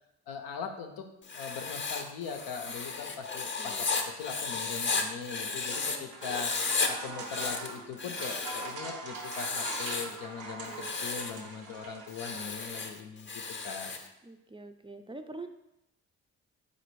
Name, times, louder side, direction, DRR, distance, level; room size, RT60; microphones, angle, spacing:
voice 1, 0.3-1.1 1.3-3.9 4.2-6.5 6.9-13.3 13.6-13.9, left 6 dB, 85° left, 4 dB, 0.6 m, -40 dB
Writing, 1.2-6.0 6.2-6.9 7.2-8.7 9.2-10.2 10.7-11.4 12.1-14.1, left 4 dB, 35° left, 0.6 m, -34 dB
voice 2, 3.6-3.9 14.2-15.5, right 2 dB, 15° right, 6 dB, 0.4 m, -44 dB
sound 1, 5.3-12.9, right 3 dB, 90° right, 0.6 m, -42 dB
4.1 x 2.5 x 4.5 m, 0.87 s
supercardioid pair, 45°, 35 cm